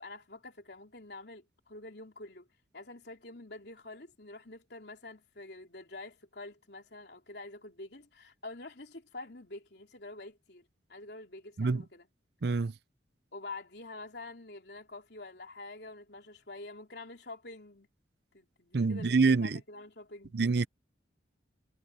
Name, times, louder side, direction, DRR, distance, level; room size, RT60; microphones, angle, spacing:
voice 1, 0.0-2.5 2.7-12.1 13.3-17.9 18.3-20.3, left 2 dB, 65° left, 3.4 m, -47 dB
voice 2, 12.4-12.7 18.7-19.6 20.3-20.7, right 4 dB, 65° right, 0.6 m, -26 dB
head